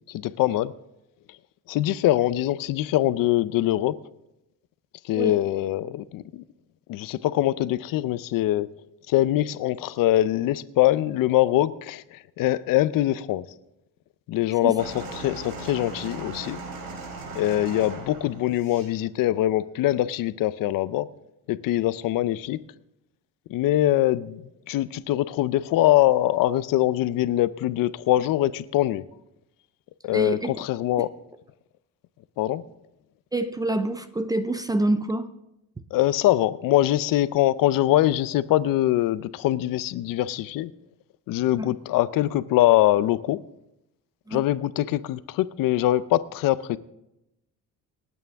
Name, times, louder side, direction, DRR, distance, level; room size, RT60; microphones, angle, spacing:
voice 1, 0.1-0.7 1.7-4.0 5.0-6.4 6.9-8.7 9.1-13.5 14.3-16.6 17.3-21.1 21.5-22.6 23.5-29.0 30.0-31.1 32.4-32.6 35.9-40.7 41.3-43.4 44.3-46.8, left 14 dB, 70° left, 0.6 m, -23 dB
sound 1, 14.8-18.9 19.8-19.9, right 3 dB, 85° right, 4.6 m, -38 dB
voice 2, 30.1-30.6 33.3-35.3 41.6-41.7 44.3-44.4, right 1 dB, 10° right, 0.4 m, -26 dB
27.0 x 9.2 x 3.5 m
cardioid pair, 175°, 35 cm